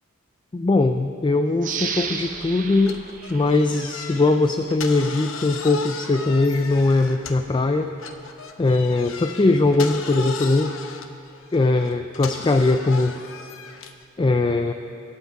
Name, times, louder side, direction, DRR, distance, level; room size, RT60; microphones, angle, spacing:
voice 1, 0.5-3.0 3.3-7.9 8.6-10.7 11.5-13.1 14.2-14.7, left 2 dB, 20° left, 7 dB, 0.3 m, -20 dB
sound 1, 1.6-4.3 4.7-4.8, right 6 dB, 40° right, 0.8 m, -33 dB
sound 2, 2.8-7.6 8.0-14.1, left 5 dB, 65° left, 0.8 m, -37 dB
21.5 x 8.0 x 4.7 m, 2.5 s
head